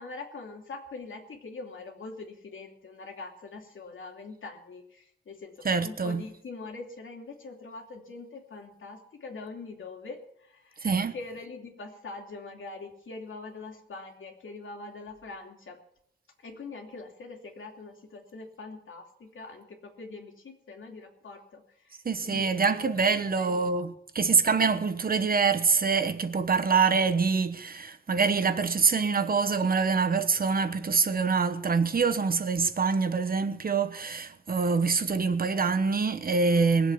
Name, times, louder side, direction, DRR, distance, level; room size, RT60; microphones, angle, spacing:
voice 1, 0.0-10.8 11.1-15.8 16.4-23.7, left 3 dB, 80° left, 2.7 m, -43 dB
voice 2, 5.6-6.3 10.8-11.1 22.0-36.9, right 5 dB, 45° right, 1.1 m, -25 dB
20.5 x 7.8 x 7.0 m
wide cardioid pair, 115°, 20 cm